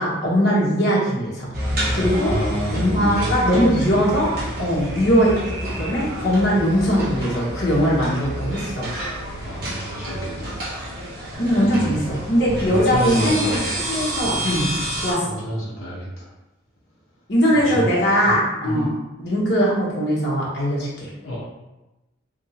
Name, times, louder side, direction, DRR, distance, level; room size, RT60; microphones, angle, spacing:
voice 1, 0.0-1.5 1.9-2.4 2.7-4.3 4.6-5.5 5.8-8.9 9.4-9.5 11.4-14.7 15.0-15.3 17.3-18.9 19.2-21.1, equal, 55° left, -6 dB, 1.1 m, -20 dB
sound 1, 1.5-15.1, right 1 dB, 50° right, 1.1 m, -29 dB
voice 2, 1.9-3.6 9.4-10.6 11.5-12.0 12.4-13.6 15.2-16.2 17.6-17.9 18.2-18.4 18.6-18.9 21.2-21.4, equal, 75° left, -7 dB, 0.9 m, -28 dB
3.0 x 2.7 x 4.1 m, 1.0 s
head